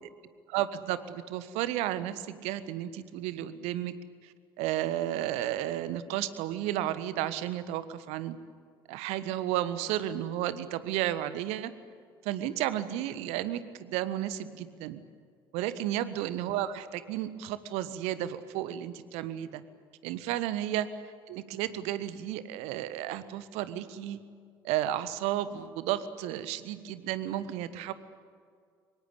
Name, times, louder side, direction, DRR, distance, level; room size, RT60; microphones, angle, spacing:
voice 1, 0.5-3.9 4.2-8.4 8.9-11.7 12.2-15.0 15.5-19.6 20.0-20.9 21.3-24.2 24.6-27.9, right 12 dB, 60° right, 14 dB, 1.4 m, -33 dB
24.5 x 22.5 x 8.4 m, 2.2 s
figure-of-eight pair, 55°, 12 cm